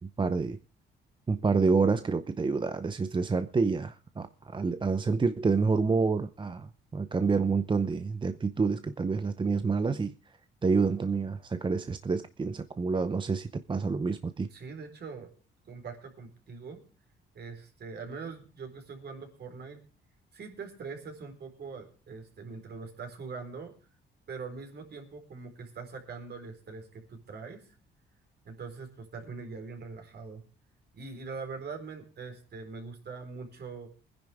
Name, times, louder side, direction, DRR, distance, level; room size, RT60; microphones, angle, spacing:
voice 1, 0.2-0.6 1.3-10.1 10.6-14.5, right 4 dB, 25° right, 0.7 m, -28 dB
voice 2, 14.5-15.3 15.7-16.8 17.3-19.8 20.3-23.7 24.3-27.6 28.4-30.4 30.9-33.9, right 4 dB, 55° right, 4.3 m, -42 dB
22.0 x 10.5 x 3.5 m
cardioid pair, 90°, 20 cm